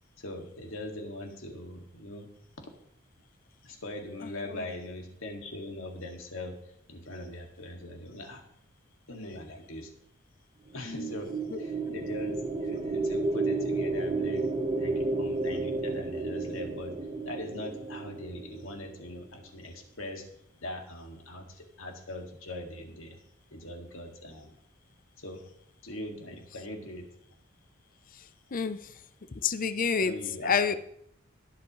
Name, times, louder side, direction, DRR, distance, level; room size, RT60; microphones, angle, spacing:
voice 1, 0.2-2.3 3.6-6.6 6.9-8.4 9.1-9.9 10.7-14.5 14.8-17.0 17.2-20.2 20.6-23.2 23.5-24.5 25.2-25.4 25.8-27.1 30.0-30.8, left 1 dB, 75° left, 2 dB, 2.0 m, -41 dB
sound 1, 10.7-19.1, right 3 dB, 30° right, 1.0 m, -32 dB
voice 2, 28.5-28.9 29.4-30.1 30.4-30.8, left 6 dB, 45° left, 13 dB, 0.6 m, -28 dB
19.0 x 7.9 x 3.1 m, 0.71 s
head